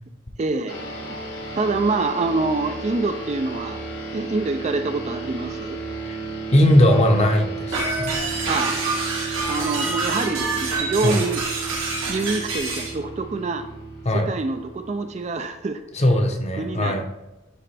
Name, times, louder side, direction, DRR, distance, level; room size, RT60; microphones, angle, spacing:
voice 1, 0.4-0.8 1.6-3.8 4.1-5.8 8.5-8.7 9.5-11.4 12.1-13.6 14.1-15.8 16.6-17.0, right 3 dB, 35° right, 8 dB, 0.3 m, -26 dB
sound 1, 0.7-15.5, right 3 dB, 65° left, 1.6 m, -33 dB
voice 2, 6.5-8.1 11.0-11.3 14.0-14.3 15.9-17.0, left 1 dB, 30° left, 4 dB, 0.7 m, -19 dB
sound 2, 7.7-12.9, right 3 dB, 85° right, 1.6 m, -27 dB
9.7 x 3.3 x 3.3 m, 0.96 s
head